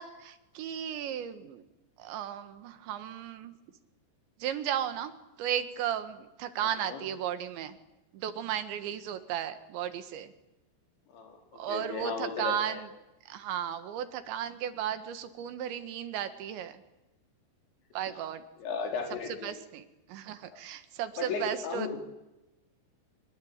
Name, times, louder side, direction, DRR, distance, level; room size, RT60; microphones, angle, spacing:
voice 1, 0.0-1.7 2.0-3.5 4.4-5.1 5.4-7.8 8.1-10.3 11.6-12.9 13.3-16.8 17.9-18.4 19.4-22.0, right 10 dB, 80° right, 10 dB, 4.0 m, -35 dB
voice 2, 6.6-7.0 11.1-11.4 11.7-12.8 18.6-19.6 21.2-22.0, left 5 dB, 80° left, 2 dB, 6.4 m, -35 dB
27.0 x 24.5 x 8.9 m, 0.96 s
omnidirectional pair, 5.1 m